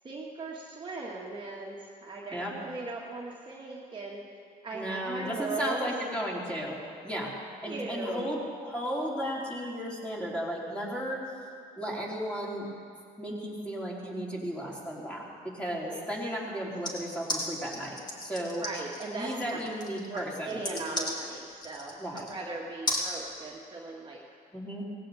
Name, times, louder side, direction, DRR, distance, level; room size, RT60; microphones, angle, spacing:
voice 1, 0.0-4.2 4.6-5.9 7.7-8.3 15.9-16.1 18.6-19.6 20.1-24.2, right 3 dB, 30° right, -3 dB, 1.9 m, -38 dB
voice 2, 4.7-6.8 7.0-7.3 7.6-11.2 11.8-12.7 13.2-15.2 15.5-18.6 19.1-20.6 22.0-22.3 24.5-24.8, equal, 5° left, -4 dB, 3.8 m, -34 dB
sound 1, 16.8-22.4 22.9-23.1, left 1 dB, 25° left, 2.8 m, -35 dB
18.0 x 16.5 x 4.3 m, 2.2 s
cardioid pair, 110°, 17 cm